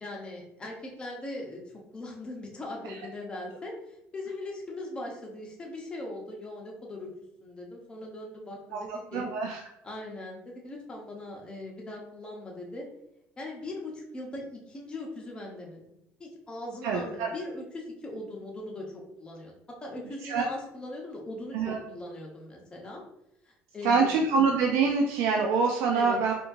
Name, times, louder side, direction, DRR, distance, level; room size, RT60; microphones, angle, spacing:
voice 1, 0.0-1.6 1.9-7.1 7.4-9.3 9.8-12.9 13.4-15.8 16.2-23.0 23.5-24.1 25.9-26.2, left 2 dB, 20° left, -1 dB, 0.9 m, -40 dB
voice 2, 8.7-9.6 16.8-17.3 20.2-20.5 21.5-21.8 23.8-26.3, right 5 dB, 80° right, 2 dB, 0.4 m, -25 dB
4.3 x 2.5 x 2.6 m, 0.82 s
cardioid pair, 125°, 5 cm